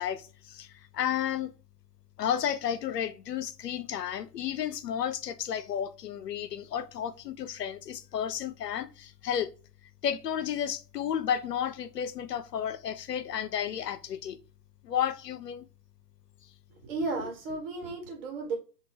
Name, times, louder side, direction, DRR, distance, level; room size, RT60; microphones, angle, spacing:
voice 1, 0.0-1.5 2.2-9.5 10.0-14.4 14.8-15.7, left 9 dB, 75° left, 0.5 m, -32 dB
voice 2, 16.7-18.6, right 3 dB, 35° right, 1.2 m, -34 dB
3.6 x 2.2 x 2.9 m
figure-of-eight pair, 130°, 49 cm